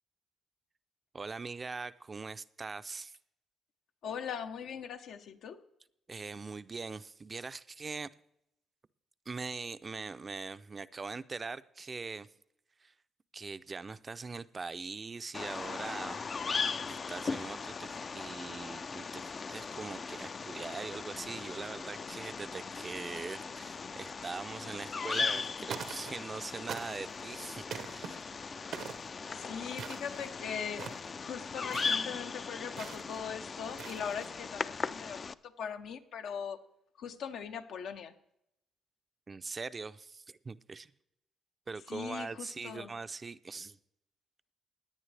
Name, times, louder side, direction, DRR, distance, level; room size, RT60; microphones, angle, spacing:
voice 1, 1.1-3.1 6.1-8.1 9.3-12.3 12.8-12.9 13.3-16.2 16.9-28.5 39.3-40.9 41.7-43.8, right 4 dB, 30° right, 0.4 m, -42 dB
voice 2, 4.0-5.6 29.4-36.6 37.0-38.1 41.9-42.9, left 7 dB, 75° left, 0.8 m, -40 dB
Bird vocalization bird call bird song, 15.3-35.3, left 5 dB, 40° left, 0.4 m, -38 dB
sound 1, 25.1-25.4 25.7-26.3 26.7-27.2 27.7-28.1 28.7-29.1 29.7-30.3 30.7-31.1 31.7-32.0 32.8-33.2 33.6-34.3, right 7 dB, 75° right, 0.8 m, -43 dB
17.5 x 9.6 x 3.3 m
cardioid pair, 90°, 0 cm